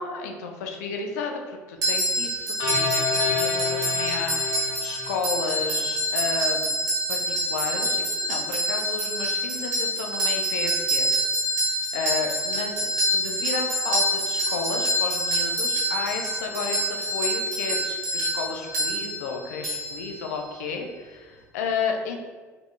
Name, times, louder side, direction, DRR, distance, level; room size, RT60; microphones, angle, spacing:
voice 1, 0.0-6.8 7.1-22.2, left 5 dB, 80° left, 3 dB, 0.4 m, -32 dB
sound 1, 1.8-20.6, equal, 85° right, 1.0 m, -26 dB
sound 2, 2.6-5.9, left 6 dB, 55° left, 1.1 m, -30 dB
3.4 x 3.3 x 2.4 m, 1.4 s
hypercardioid pair, 70°, 8 cm